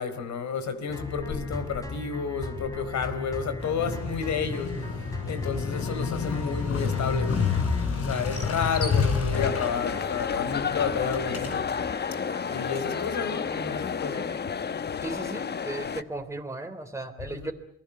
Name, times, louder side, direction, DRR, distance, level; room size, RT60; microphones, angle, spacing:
voice 1, 0.0-4.8 5.3-7.4 8.0-11.7 12.5-14.3 14.8-15.0 17.2-17.5, left 6 dB, 65° left, 11 dB, 4.3 m, -31 dB
sound 1, 0.9-14.4, left 1 dB, 10° left, 4.8 m, -40 dB
Motorcycle, 3.6-11.9, left 5 dB, 50° left, 5.2 m, -30 dB
sound 2, 9.3-16.0, left 6 dB, 35° left, 1.0 m, -31 dB
voice 2, 15.0-17.5, right 2 dB, 10° right, 5 dB, 3.4 m, -36 dB
28.5 x 21.5 x 8.2 m, 0.65 s
cardioid pair, 90°, 30 cm